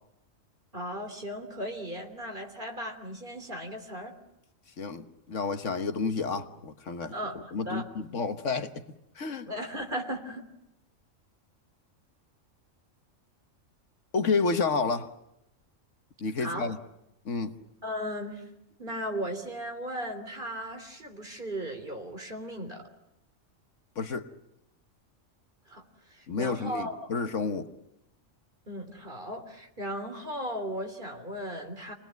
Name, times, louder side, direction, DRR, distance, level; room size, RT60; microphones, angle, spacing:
voice 1, 0.7-4.1 7.1-7.9 9.5-10.4 16.4-16.7 17.8-18.5 18.8-22.9 25.7-25.8 26.1-27.1 28.7-31.9, equal, 40° right, 3.5 m, -36 dB
voice 2, 4.8-7.1 7.5-8.8 9.2-9.5 14.1-15.1 16.2-16.8 17.2-17.5 24.0-24.3 26.3-27.7, left 4 dB, 65° left, 1.5 m, -30 dB
29.0 x 20.0 x 9.2 m
omnidirectional pair, 1.4 m